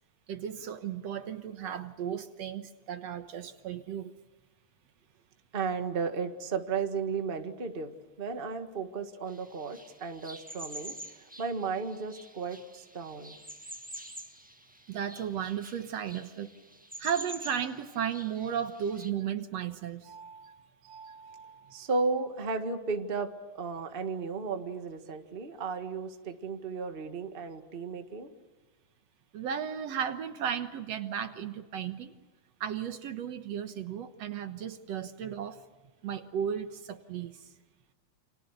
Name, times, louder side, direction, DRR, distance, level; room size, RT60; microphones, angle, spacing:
voice 1, 0.3-4.1 14.9-16.5 17.0-21.8 29.3-32.1 32.6-35.6 36.0-37.4, right 8 dB, 65° right, 9 dB, 2.2 m, -35 dB
voice 2, 5.5-7.9 8.2-13.4 21.7-28.3, right 4 dB, 25° right, 6 dB, 1.4 m, -34 dB
sound 1, 9.3-19.1, right 1 dB, 5° right, 0.8 m, -47 dB
29.5 x 28.5 x 6.7 m, 1.2 s
omnidirectional pair, 3.3 m